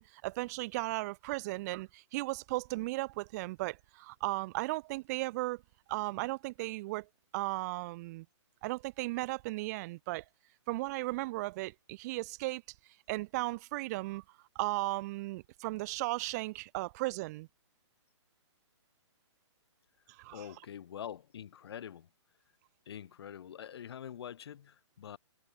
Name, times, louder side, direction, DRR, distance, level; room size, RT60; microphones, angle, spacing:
voice 1, 0.0-5.6 5.9-7.1 7.3-8.3 8.6-10.2 10.7-12.6 13.1-14.2 14.6-17.5 20.2-20.4, right 21 dB, 35° right, 1.9 m, -36 dB
voice 2, 20.3-22.1 22.9-25.2, left 9 dB, 55° left, 5.4 m, -45 dB
figure-of-eight pair, 135°, 16 cm